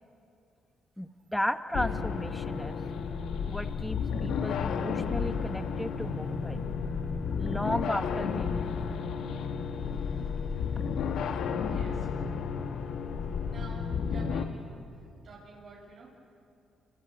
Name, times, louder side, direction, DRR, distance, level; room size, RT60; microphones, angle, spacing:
voice 1, 1.0-2.8 3.5-6.6 7.4-8.8, equal, 5° left, 10 dB, 1.2 m, -35 dB
sound 1, 1.7-14.4, left 6 dB, 75° left, 1.8 m, -32 dB
voice 2, 11.7-12.1 13.4-14.6 14.9-16.1, right 3 dB, 60° right, -3 dB, 7.0 m, -50 dB
28.0 x 26.0 x 8.1 m, 2.6 s
cardioid pair, 90°, 0 cm